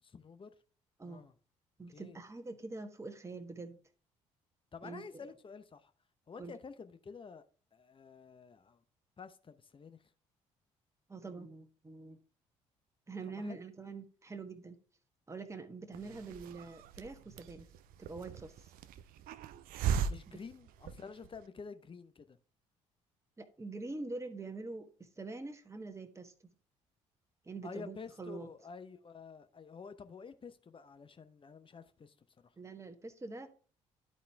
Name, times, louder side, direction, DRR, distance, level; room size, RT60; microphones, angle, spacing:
voice 1, 0.0-0.5 1.0-1.3 1.9-2.2 4.7-5.9 6.3-7.4 7.7-8.8 9.2-10.0 13.3-13.6 20.0-22.4 27.6-32.1 32.4-32.5, left 5 dB, 30° left, 0.9 m, -50 dB
voice 2, 1.8-3.8 4.8-5.3 6.4-6.5 11.1-12.2 13.1-14.8 15.3-17.7 18.0-18.7 20.3-20.4 23.4-26.5 27.4-28.5 32.6-33.6, right 3 dB, 15° right, 1.3 m, -45 dB
Hiss, 15.9-21.4, right 7 dB, 60° right, 0.5 m, -39 dB
11.5 x 4.2 x 3.4 m
hypercardioid pair, 50°, 16 cm